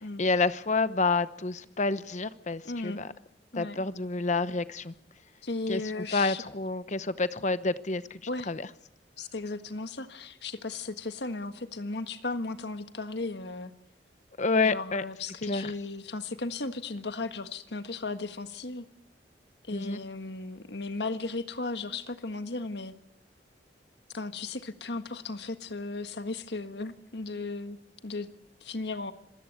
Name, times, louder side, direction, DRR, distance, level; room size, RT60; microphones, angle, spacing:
voice 1, 0.2-3.1 3.5-4.9 5.7-5.8 6.1-8.2 8.5-8.7 14.4-15.0 15.5-15.7 19.7-20.0, left 3 dB, 45° left, 14 dB, 1.0 m, -28 dB
voice 2, 2.6-3.0 3.5-3.8 5.4-6.4 8.3-8.5 9.2-13.7 14.6-18.9 19.7-22.9 24.1-27.8 28.0-28.3 28.6-29.1, left 3 dB, 70° left, 10 dB, 1.6 m, -35 dB
26.0 x 16.5 x 8.2 m, 0.76 s
head